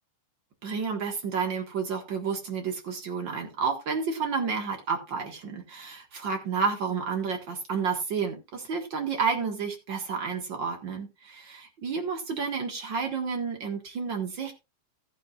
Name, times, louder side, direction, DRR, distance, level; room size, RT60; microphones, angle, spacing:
voice 1, 0.6-14.5, right 5 dB, 45° right, 4 dB, 1.7 m, -30 dB
14.5 x 9.8 x 2.5 m, 0.24 s
omnidirectional pair, 4.2 m